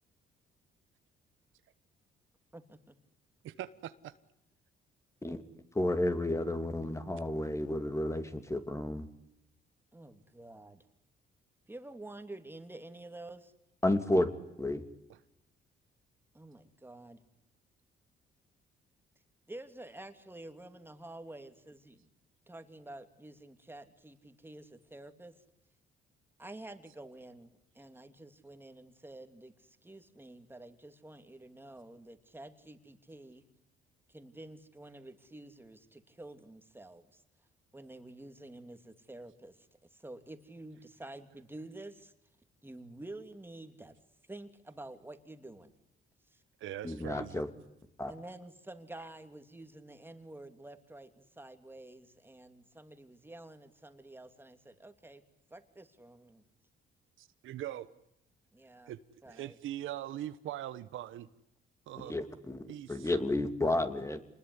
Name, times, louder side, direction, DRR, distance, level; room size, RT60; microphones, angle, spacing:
voice 1, 2.5-3.0 9.9-10.8 11.7-13.5 16.3-17.2 19.5-22.1 22.5-25.3 26.4-33.4 34.1-37.2 37.7-42.1 42.6-44.0 44.3-45.7 46.3-46.4 48.1-55.2 55.5-56.4 58.5-58.9 59.2-59.6 62.0-62.2 64.0-64.1, right 2 dB, 10° right, 8 dB, 2.9 m, -49 dB
voice 2, 3.4-4.1 46.6-47.4 57.2-57.9 58.9-59.0 59.3-61.3 61.9-62.1 62.7-63.1, right 13 dB, 80° right, 13 dB, 1.3 m, -41 dB
voice 3, 5.7-9.1 13.8-14.3 14.6-14.8 46.8-47.5 48.0-48.1 62.1-64.2, left 1 dB, 15° left, 9 dB, 2.8 m, -31 dB
27.5 x 20.5 x 9.8 m, 0.82 s
cardioid pair, 90°, 20 cm